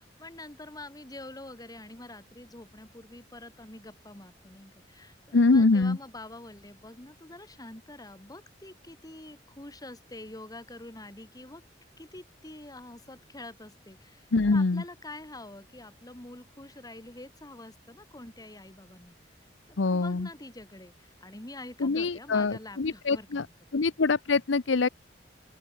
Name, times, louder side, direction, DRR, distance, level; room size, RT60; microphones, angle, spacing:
voice 1, 0.0-11.6 12.0-19.3 19.7-23.5, left 2 dB, 20° left, 2.3 m, -46 dB
voice 2, 5.3-6.0 14.3-14.8 19.8-20.3 21.8-23.5 23.7-24.9, left 3 dB, 85° left, 0.7 m, -24 dB
open air
head